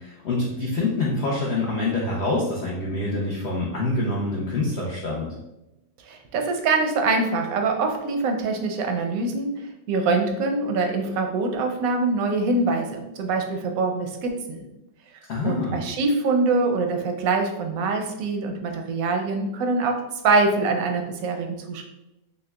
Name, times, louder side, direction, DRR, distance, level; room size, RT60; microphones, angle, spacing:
voice 1, 0.0-5.4 15.3-15.8, left 2 dB, 65° left, -3 dB, 0.6 m, -26 dB
voice 2, 6.1-9.5 9.9-14.6 15.4-21.8, right 3 dB, 70° right, 4 dB, 0.9 m, -24 dB
6.3 x 2.2 x 2.2 m, 0.93 s
omnidirectional pair, 1.9 m